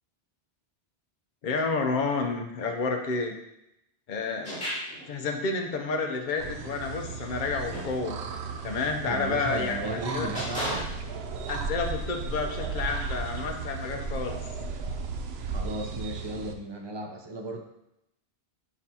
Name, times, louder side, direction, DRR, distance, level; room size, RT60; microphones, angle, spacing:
voice 1, 1.4-3.3 4.1-4.5 5.1-8.2 8.6-9.8 10.1-10.3 10.7-10.9 11.5-14.4, left 4 dB, 55° left, 3 dB, 0.8 m, -30 dB
sound 1, 4.4-5.1 7.4-8.0 9.1-9.3 10.3-11.2, equal, 5° left, 2.4 m, -34 dB
sound 2, 6.4-16.5, right 4 dB, 80° right, 0.8 m, -35 dB
voice 2, 9.1-10.9 15.4-17.6, right 1 dB, 30° right, 1 dB, 0.7 m, -35 dB
7.5 x 4.5 x 2.8 m, 0.84 s
omnidirectional pair, 1.1 m